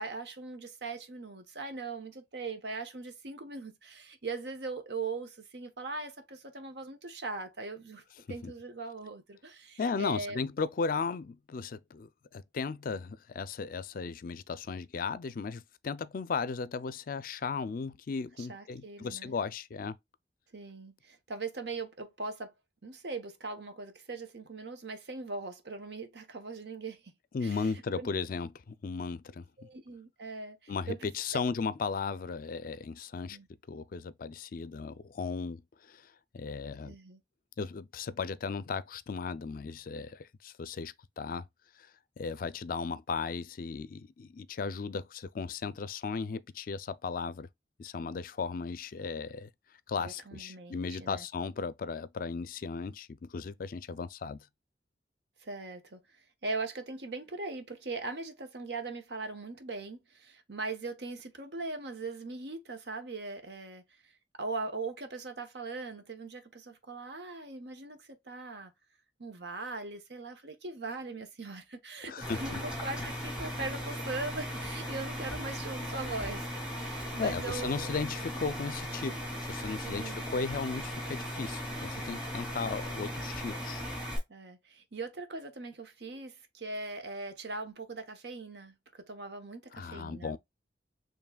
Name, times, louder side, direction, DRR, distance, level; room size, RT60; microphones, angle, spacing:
voice 1, 0.0-8.0 8.3-10.5 18.4-19.3 20.5-22.5 22.8-27.0 27.4-27.6 28.0-28.1 29.6-31.4 33.3-33.5 36.8-37.2 50.0-51.2 55.4-56.0 56.4-63.8 64.4-68.7 69.2-77.9 79.8-80.2 84.3-90.4, right 3 dB, 70° right, 1.0 m, -40 dB
voice 2, 9.8-20.0 27.3-29.4 30.7-33.4 33.7-36.9 37.6-41.5 41.8-41.9 42.2-47.5 47.8-49.5 49.9-54.5 72.0-72.6 77.2-83.8 89.7-90.4, left 5 dB, 50° left, 0.4 m, -36 dB
sound 1, 72.2-84.2, equal, 5° right, 2.7 m, -37 dB
7.1 x 3.1 x 2.2 m
head